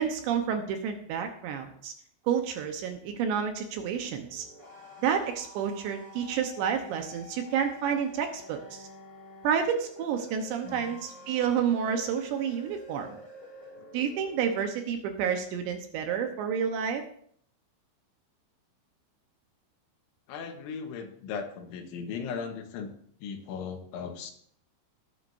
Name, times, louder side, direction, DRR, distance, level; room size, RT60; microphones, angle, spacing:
voice 1, 0.0-1.9 2.3-4.4 5.0-8.8 9.4-13.2 13.9-17.0, right 7 dB, 75° right, 5 dB, 3.2 m, -30 dB
sound 1, 4.2-14.6, left 2 dB, 15° left, 4.3 m, -48 dB
voice 2, 10.6-11.0 20.3-22.9 23.2-24.3, left 6 dB, 80° left, 4 dB, 3.7 m, -37 dB
19.0 x 9.4 x 2.7 m, 0.63 s
omnidirectional pair, 5.4 m